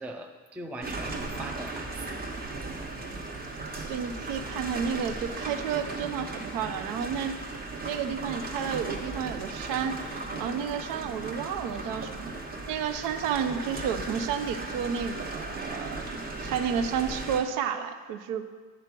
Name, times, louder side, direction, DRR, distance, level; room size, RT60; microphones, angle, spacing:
voice 1, 0.0-1.9 2.8-2.9 10.6-10.7, right 1 dB, 5° right, 4 dB, 0.3 m, -40 dB
sound 1, 0.8-17.4, right 3 dB, 30° right, 1.1 m, -37 dB
voice 2, 3.9-7.4 7.8-12.3 12.7-16.1 16.4-18.4, right 7 dB, 75° right, 9 dB, 0.7 m, -31 dB
9.0 x 4.7 x 6.0 m, 1.5 s
cardioid pair, 120°, 32 cm